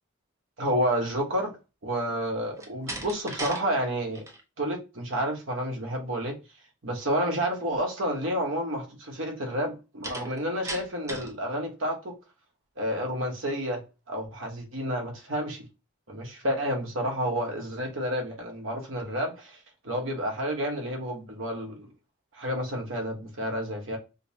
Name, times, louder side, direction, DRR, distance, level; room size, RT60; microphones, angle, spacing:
voice 1, 0.6-1.5 1.8-4.2 4.6-6.4 6.8-12.1 12.8-13.8 14.1-15.7 16.1-19.6 19.8-21.9 22.3-24.0, equal, 70° right, 1.0 m, -30 dB
Slam, 2.5-3.6 4.0-4.4 10.0-11.4, right 1 dB, 15° right, 0.5 m, -37 dB
5.1 x 2.1 x 2.7 m
head